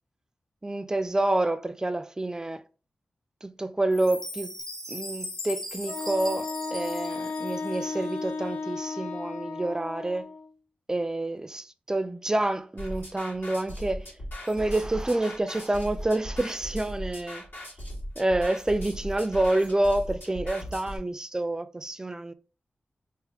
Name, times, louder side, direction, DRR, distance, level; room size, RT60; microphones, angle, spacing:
voice 1, 0.6-2.6 3.4-4.5 4.9-10.3 10.9-14.1 14.5-17.4 18.2-22.3, right 1 dB, 20° right, 0.3 m, -28 dB
Chime, 3.9-8.1, left 1 dB, 15° left, 0.7 m, -39 dB
Wind instrument woodwind instrument, 5.9-10.5, left 4 dB, 60° left, 0.4 m, -34 dB
sound 1, 12.8-21.0, equal, 80° left, 2.1 m, -38 dB
3.5 x 2.9 x 3.5 m
wide cardioid pair, 110°, 3 cm